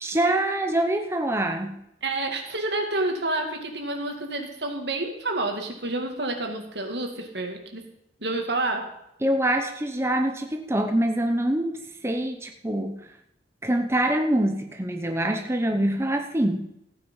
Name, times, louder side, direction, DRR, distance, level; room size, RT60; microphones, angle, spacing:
voice 1, 0.0-1.8 9.2-13.0 13.6-16.6, right 1 dB, 15° right, 5 dB, 0.9 m, -25 dB
voice 2, 2.0-7.9 8.2-9.0, right 2 dB, 70° right, 4 dB, 2.3 m, -29 dB
15.0 x 9.2 x 5.6 m, 0.80 s
head